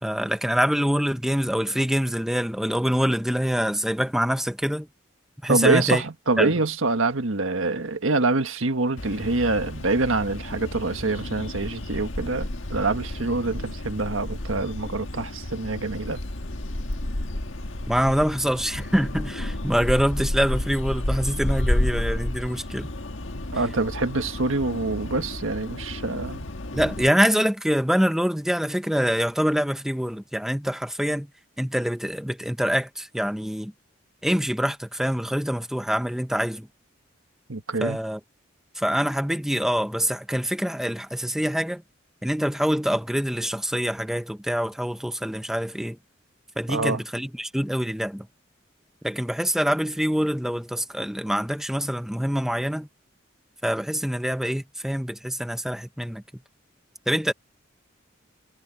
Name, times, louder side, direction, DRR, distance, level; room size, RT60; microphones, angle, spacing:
voice 1, 0.0-4.9 5.4-6.0 6.4-6.5 17.9-22.9 26.7-31.3 31.6-33.7 34.2-36.7 37.8-38.2 38.8-41.8 42.2-46.0 46.6-48.3 49.0-52.9 53.6-56.2 57.1-57.3, equal, ahead, 0.8 m, -25 dB
voice 2, 5.5-16.2 23.5-26.5 37.5-38.0 46.7-47.0, right 3 dB, 90° right, 1.7 m, -25 dB
sound 1, 9.0-27.1, left 1 dB, 75° left, 1.6 m, -31 dB
head